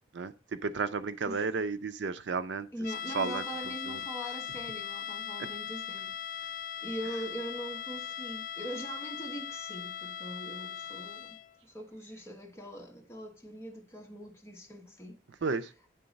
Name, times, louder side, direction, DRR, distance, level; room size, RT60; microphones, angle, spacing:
voice 1, 0.1-2.7 3.1-3.4 3.9-4.0 15.4-15.7, right 4 dB, 70° right, 0.5 m, -32 dB
voice 2, 2.7-11.4 11.6-15.2, right 1 dB, 15° left, 1.1 m, -42 dB
sound 1, 2.8-11.5, left 9 dB, 45° left, 0.3 m, -39 dB
9.1 x 3.8 x 5.1 m
head